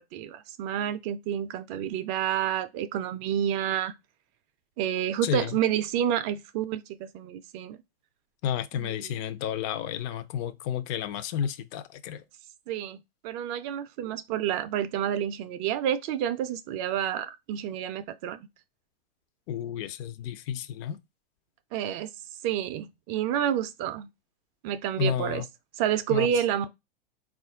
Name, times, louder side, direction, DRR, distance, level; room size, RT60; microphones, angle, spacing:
voice 1, 0.1-3.9 4.8-7.8 8.7-9.2 12.7-18.4 21.7-22.1 22.4-24.1 24.6-25.4 25.8-26.7, right 10 dB, 35° right, 0.4 m, -29 dB
voice 2, 5.2-5.6 8.4-12.2 19.5-21.0 25.0-25.4 26.1-26.3, left 9 dB, 40° left, 0.5 m, -31 dB
4.1 x 2.4 x 3.8 m
hypercardioid pair, 110°, 30 cm